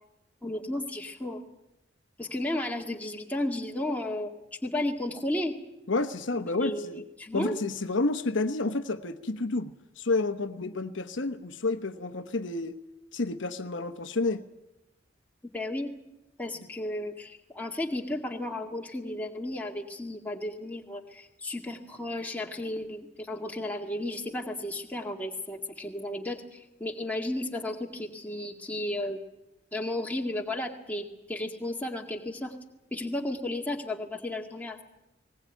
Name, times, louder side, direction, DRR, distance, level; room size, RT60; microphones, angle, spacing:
voice 1, 0.4-1.4 2.2-4.3 4.6-5.5 6.3-7.6 15.5-15.9 16.4-29.2 29.7-32.6 32.9-34.8, left 1 dB, 10° left, 0 dB, 2.0 m, -33 dB
voice 2, 5.9-7.0 7.3-12.8 13.1-14.4, left 3 dB, 70° left, 8 dB, 1.0 m, -30 dB
20.0 x 19.0 x 9.1 m, 0.94 s
head